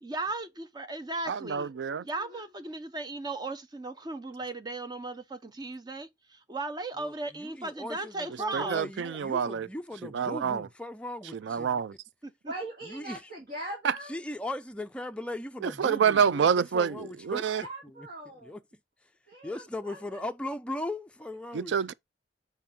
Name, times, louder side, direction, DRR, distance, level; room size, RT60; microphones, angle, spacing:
voice 1, 0.0-1.7 2.0-6.1 6.5-8.9 12.2-12.5, right 2 dB, 25° right, 0.7 m, -36 dB
voice 2, 1.3-2.0 8.5-9.7 10.1-10.7 11.4-11.9 13.8-13.9 15.6-17.6 21.5-21.9, right 7 dB, 90° right, 0.4 m, -27 dB
voice 3, 7.0-11.8 12.8-13.3 14.1-16.5 16.7-17.5 17.8-18.1 18.4-18.6 19.4-21.9, left 1 dB, 5° left, 0.4 m, -38 dB
voice 4, 12.4-14.2 17.5-18.6 19.3-20.3, right 1 dB, 60° right, 1.9 m, -41 dB
5.9 x 4.6 x 3.6 m
head